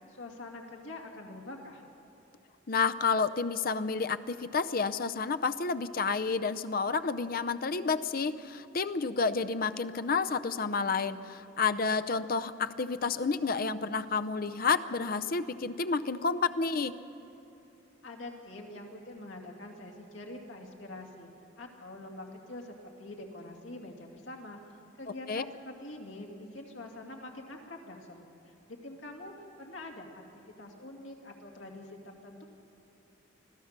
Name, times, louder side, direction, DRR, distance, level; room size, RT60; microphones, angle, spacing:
voice 1, 0.1-1.8 18.0-21.3 21.6-24.6 25.0-30.2 30.6-32.4, left 2 dB, 70° left, 1 dB, 2.6 m, -45 dB
voice 2, 2.7-16.9 25.3-25.4, left 4 dB, 45° left, 10 dB, 0.6 m, -30 dB
25.5 x 15.5 x 6.7 m, 2.9 s
head